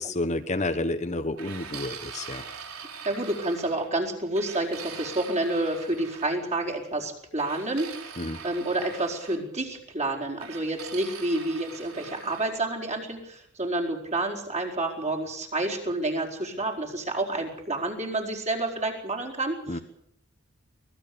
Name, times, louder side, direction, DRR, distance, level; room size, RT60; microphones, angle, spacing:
voice 1, 0.0-2.4 8.2-8.4 19.7-19.8, left 2 dB, 35° left, 9 dB, 1.2 m, -30 dB
sound 1, 1.4-3.9 4.4-6.3 7.4-9.4 10.4-12.5, right 6 dB, 90° right, 4.2 m, -42 dB
voice 2, 3.0-19.8, right 2 dB, 35° right, 1 dB, 4.7 m, -29 dB
24.0 x 19.0 x 7.0 m, 0.74 s
head